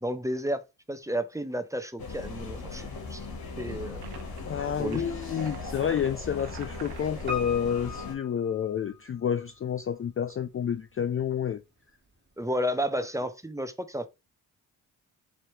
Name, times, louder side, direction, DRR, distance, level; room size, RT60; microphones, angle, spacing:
voice 1, 0.0-3.3 3.6-4.0 4.8-5.0 12.4-14.1, equal, 5° right, 0.6 m, -32 dB
sound 1, 2.0-8.1, left 3 dB, 55° left, 1.5 m, -38 dB
sound 2, 4.0-4.4 4.8-7.4, right 8 dB, 65° right, 0.8 m, -49 dB
voice 2, 4.4-11.6, left 8 dB, 35° left, 0.4 m, -29 dB
Piano, 7.3-9.3 9.6-9.7, left 6 dB, 25° right, 1.4 m, -38 dB
4.4 x 2.8 x 3.2 m
supercardioid pair, 45°, 43 cm